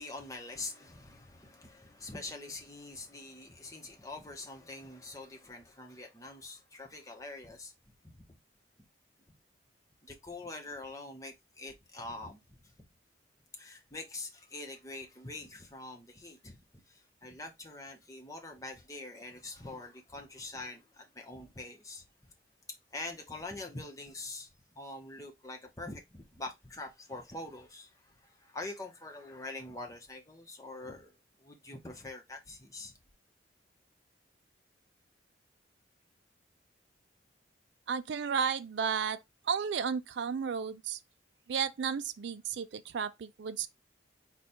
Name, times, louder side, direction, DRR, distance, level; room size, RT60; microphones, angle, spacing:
voice 1, 0.0-7.7 8.1-8.2 10.0-12.7 13.5-16.6 16.9-22.3 22.9-32.9, left 2 dB, 15° left, 0.9 m, -45 dB
voice 2, 37.9-39.2 39.5-41.0 41.5-43.7, right 6 dB, 65° right, 0.4 m, -33 dB
5.0 x 2.3 x 4.2 m
head